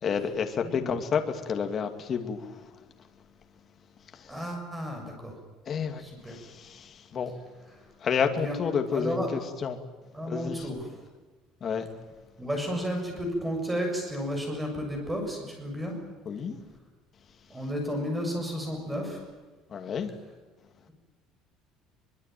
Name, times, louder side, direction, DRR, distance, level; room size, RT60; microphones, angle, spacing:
voice 1, 0.0-2.7 4.1-4.4 5.7-7.3 8.0-9.8 10.2-10.7 11.6-11.9 16.3-16.6 19.7-20.1, left 6 dB, 30° left, 6 dB, 2.4 m, -30 dB
voice 2, 4.3-5.3 6.0-6.4 8.4-8.6 8.9-9.3 10.1-10.9 12.4-16.0 17.5-19.2, equal, 5° right, 2 dB, 7.1 m, -32 dB
23.5 x 22.5 x 9.3 m, 1.3 s
cardioid pair, 170°, 0 cm